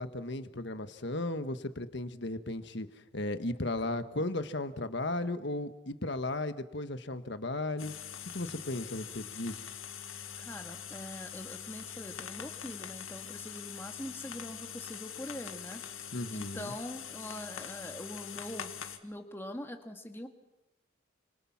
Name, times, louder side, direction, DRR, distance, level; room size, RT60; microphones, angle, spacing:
voice 1, 0.0-2.9 3.1-7.9 8.3-9.7 16.1-16.7, left 2 dB, 60° left, 10 dB, 1.4 m, -35 dB
sound 1, 7.8-19.0, left 8 dB, 90° left, 1.9 m, -43 dB
voice 2, 10.4-15.8 16.3-18.7 19.0-20.3, left 1 dB, 10° left, 4 dB, 1.9 m, -43 dB
29.5 x 26.5 x 6.0 m, 0.96 s
head